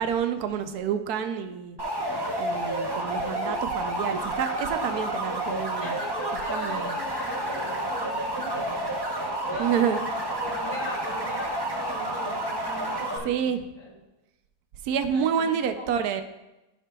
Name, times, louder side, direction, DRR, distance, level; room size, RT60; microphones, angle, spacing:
voice 1, 0.0-1.8 2.4-5.9 6.5-6.9 9.6-10.0 13.2-13.6 14.8-16.2, right 8 dB, 75° right, 8 dB, 1.1 m, -28 dB
sound 1, 1.8-13.2, right 1 dB, 30° right, 0.4 m, -30 dB
voice 2, 5.8-8.9 9.5-10.0 10.3-13.9 15.0-15.9, equal, 30° left, -4 dB, 2.5 m, -39 dB
12.5 x 5.8 x 2.3 m, 0.99 s
omnidirectional pair, 1.7 m